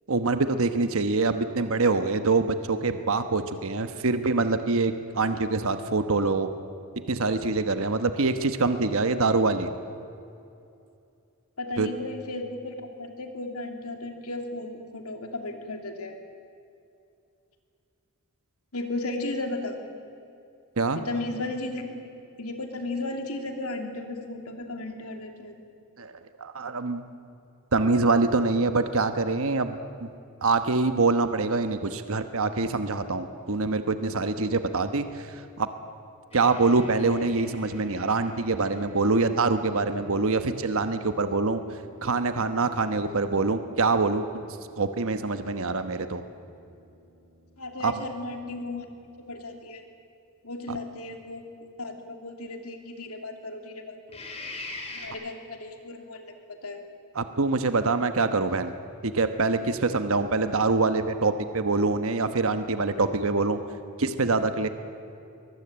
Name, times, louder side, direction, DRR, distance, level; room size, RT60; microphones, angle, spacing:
voice 1, 0.1-6.5 7.1-9.7 11.8-11.9 20.8-21.0 26.0-26.1 26.4-27.0 27.7-30.1 30.4-35.7 36.3-41.6 42.0-44.2 44.8-46.2 47.8-47.9 50.7-50.8 57.1-58.7 59.0-63.6 64.0-64.7, right 3 dB, 65° right, 9 dB, 1.1 m, -25 dB
voice 2, 11.6-16.2 18.7-19.8 20.9-21.8 22.4-25.5 47.6-48.9 49.3-49.8 50.4-51.4 51.8-54.2 54.9-56.8, left 2 dB, 80° left, 5 dB, 2.9 m, -35 dB
sound 1, 36.3-49.4 54.1-55.1, left 1 dB, 30° left, 3.6 m, -47 dB
23.5 x 20.0 x 8.8 m, 2.6 s
head